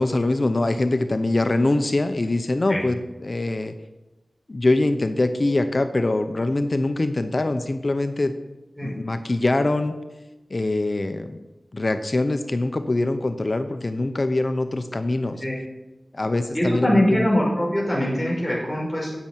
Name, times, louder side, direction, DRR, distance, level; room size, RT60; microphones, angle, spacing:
voice 1, 0.0-3.7 4.5-8.3 8.8-9.9 10.5-11.4 11.7-15.4 16.1-17.3, left 2 dB, 45° left, 8 dB, 0.9 m, -23 dB
voice 2, 16.5-19.1, left 1 dB, 5° left, -5 dB, 5.3 m, -22 dB
10.0 x 8.7 x 9.2 m, 1.1 s
wide cardioid pair, 70°, 0 cm